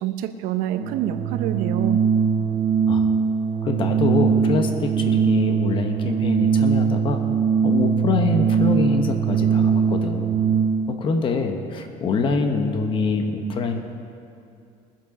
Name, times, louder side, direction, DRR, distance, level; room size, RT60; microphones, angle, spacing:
voice 1, 0.0-2.0 13.4-13.5, right 12 dB, 70° right, 9 dB, 0.8 m, -27 dB
Organ, 0.7-11.0, right 6 dB, 35° right, 0.5 m, -21 dB
voice 2, 3.6-7.2 7.6-10.3 10.9-13.8, left 4 dB, 35° left, 5 dB, 1.1 m, -25 dB
20.0 x 7.5 x 5.3 m, 2.6 s
cardioid pair, 140°, 15 cm